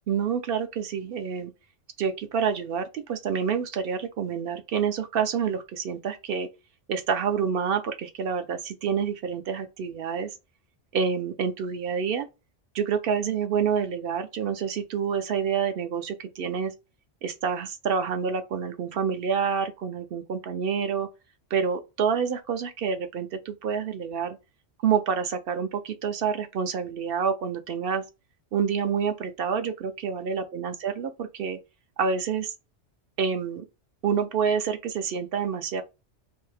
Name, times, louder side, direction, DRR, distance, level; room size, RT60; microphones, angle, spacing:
voice 1, 0.1-1.5 2.0-6.5 6.9-10.4 10.9-12.3 12.7-16.7 17.2-21.1 21.5-24.4 24.8-28.0 28.5-31.6 32.0-32.5 33.2-33.6 34.0-35.8, right 6 dB, 60° right, 0.7 m, -28 dB
2.7 x 2.7 x 3.2 m
omnidirectional pair, 1.2 m